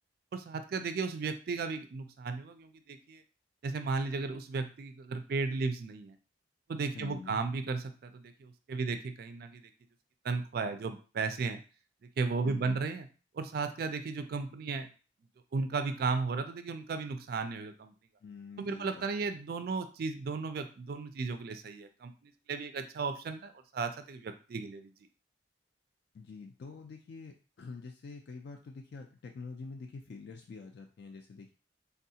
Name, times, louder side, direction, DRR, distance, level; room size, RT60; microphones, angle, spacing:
voice 1, 0.3-3.2 3.6-6.2 6.7-9.7 10.2-11.6 12.0-13.1 13.4-14.9 15.5-17.9 18.6-24.9, right 4 dB, 50° right, 8 dB, 0.3 m, -35 dB
voice 2, 6.9-7.4 12.4-12.9 18.2-19.3 26.1-31.5, left 4 dB, 55° left, 3 dB, 0.3 m, -46 dB
3.4 x 2.3 x 2.7 m, 0.35 s
head